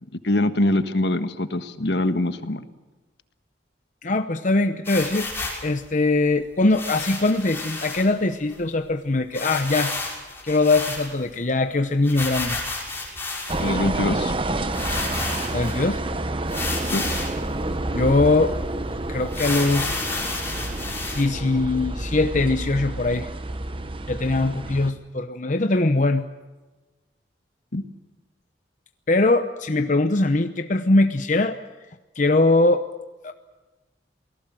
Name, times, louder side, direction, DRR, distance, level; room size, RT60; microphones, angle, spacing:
voice 1, 0.2-2.6 13.6-14.3 16.9-17.0 27.7-27.8, left 1 dB, 65° left, 10 dB, 1.5 m, -23 dB
voice 2, 4.0-5.3 5.6-9.9 10.4-12.6 15.5-16.0 17.9-18.5 19.1-20.1 21.1-23.3 24.1-26.3 29.1-31.6 32.2-32.8 33.2-33.3, left 2 dB, 45° left, 8 dB, 0.9 m, -21 dB
sound 1, 4.8-5.7 6.7-8.0 8.5-8.6 8.8-8.9 9.3-11.3 12.0-13.7 14.3-14.4 14.7-15.8 16.5-17.4 17.9-18.0 18.4-18.5 19.3-21.2, left 3 dB, 15° left, 6.2 m, -31 dB
sound 2, 13.5-24.9, right 2 dB, 30° right, 1.2 m, -29 dB
28.5 x 19.0 x 7.6 m, 1.2 s
head